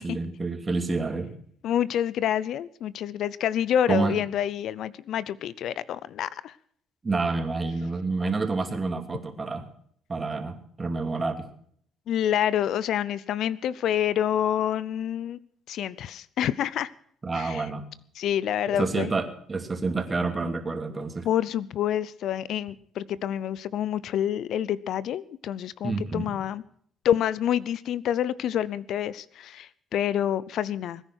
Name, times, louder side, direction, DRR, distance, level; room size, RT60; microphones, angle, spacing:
voice 1, 0.0-1.3 3.9-4.1 7.0-9.7 10.1-11.5 17.2-17.8 18.7-21.3 25.8-26.3, right 3 dB, 25° right, 7 dB, 2.7 m, -28 dB
voice 2, 1.6-6.6 12.1-15.4 15.7-16.9 17.3-17.6 18.2-19.1 21.2-26.6 27.0-31.0, left 10 dB, 70° left, 19 dB, 0.7 m, -27 dB
21.0 x 10.0 x 6.3 m, 0.62 s
cardioid pair, 90°, 0 cm